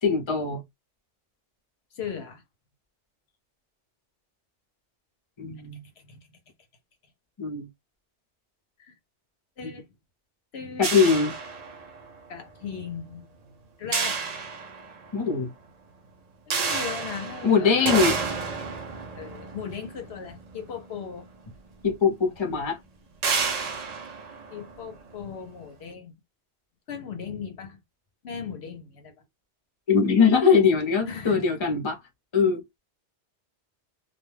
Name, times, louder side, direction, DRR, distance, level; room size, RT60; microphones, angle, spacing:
voice 1, 0.0-0.6 5.4-5.8 7.4-7.7 10.8-11.4 15.1-15.5 17.4-18.2 21.8-22.8 29.9-32.0 32.3-32.8, left 5 dB, 30° left, 0.6 m, -22 dB
voice 2, 1.9-2.4 6.0-6.2 8.8-8.9 9.6-9.9 10.5-10.9 12.3-13.2 13.8-14.3 16.5-18.0 19.2-21.3 24.5-26.1 26.9-27.8 28.2-29.1 31.0-31.4, left 6 dB, 65° left, 0.9 m, -37 dB
sound 1, 10.8-12.2 13.9-15.2 16.5-20.9 21.9-22.0 22.4-22.5 23.2-25.2, right 5 dB, 50° right, 0.5 m, -30 dB
2.3 x 2.2 x 3.1 m
omnidirectional pair, 1.2 m